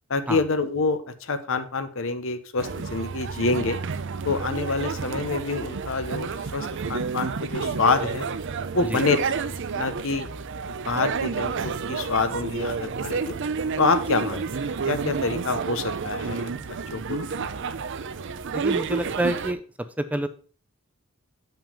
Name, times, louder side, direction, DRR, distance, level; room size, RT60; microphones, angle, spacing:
voice 1, 0.1-3.8 4.2-8.3 8.7-10.3 10.7-13.3 13.8-14.4 14.9-16.5 16.9-17.5, left 4 dB, 65° left, 10 dB, 1.0 m, -27 dB
sound 1, 2.6-19.5, right 5 dB, 60° right, 0.6 m, -30 dB
voice 2, 18.5-19.6 20.0-20.3, right 1 dB, 5° right, 10 dB, 0.5 m, -27 dB
7.3 x 5.8 x 5.1 m, 0.40 s
head